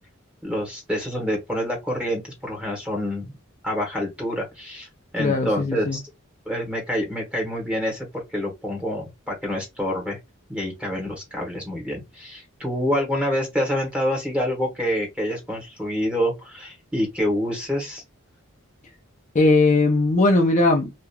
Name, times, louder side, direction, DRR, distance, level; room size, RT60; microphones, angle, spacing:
voice 1, 0.4-3.4 3.6-4.9 5.1-6.0 6.5-10.2 10.5-18.0, equal, 5° right, 1.0 m, -27 dB
voice 2, 5.2-6.0 19.3-20.9, left 2 dB, 35° left, 0.4 m, -19 dB
2.9 x 2.4 x 2.2 m
head